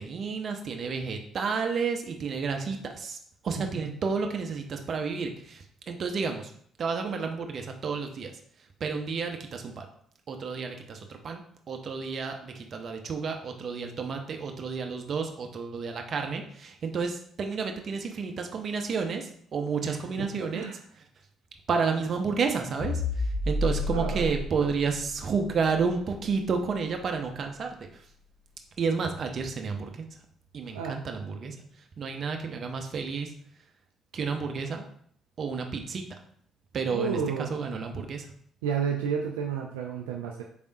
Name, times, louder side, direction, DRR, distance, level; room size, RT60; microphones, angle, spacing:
voice 1, 0.0-3.2 3.4-6.5 6.8-8.3 8.8-9.9 10.3-11.4 11.7-20.6 21.0-21.1 21.7-28.0 28.8-30.1 30.5-31.6 32.0-33.3 34.1-34.9 35.4-36.0 36.7-38.3, right 5 dB, 50° right, 4 dB, 0.7 m, -31 dB
voice 2, 19.8-20.3 20.5-20.8 23.9-24.3 30.7-31.0 36.9-37.5 38.6-40.4, right 6 dB, 80° right, 0 dB, 0.3 m, -31 dB
sound 1, 22.8-27.3, left 2 dB, 50° left, 1.8 m, -32 dB
4.8 x 3.4 x 2.6 m, 0.62 s
hypercardioid pair, 50°, 0 cm